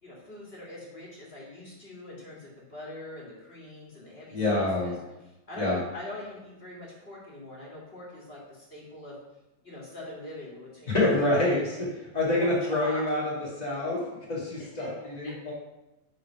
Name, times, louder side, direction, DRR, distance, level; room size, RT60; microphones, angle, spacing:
voice 1, 0.0-4.9 5.5-9.2 9.6-11.8 12.4-13.0 14.6-14.9 15.2-15.3, left 1 dB, 25° left, -5 dB, 1.6 m, -42 dB
voice 2, 4.3-4.9 5.6-5.8 10.9-11.9 12.1-13.3 13.6-14.0 14.3-15.5, left 2 dB, 45° left, -6 dB, 0.5 m, -26 dB
9.4 x 3.4 x 5.7 m, 0.99 s
omnidirectional pair, 3.8 m